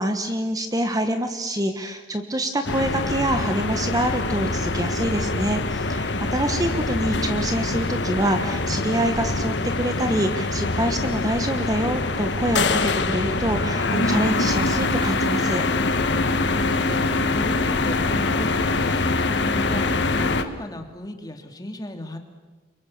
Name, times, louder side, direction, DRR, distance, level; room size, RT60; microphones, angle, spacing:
voice 1, 0.0-15.6, right 1 dB, 20° right, 7 dB, 1.3 m, -26 dB
sound 1, 2.6-20.4, left 3 dB, 75° left, 1.5 m, -24 dB
voice 2, 16.3-22.2, left 1 dB, 20° left, 5 dB, 2.6 m, -35 dB
28.5 x 24.0 x 7.2 m, 1.2 s
head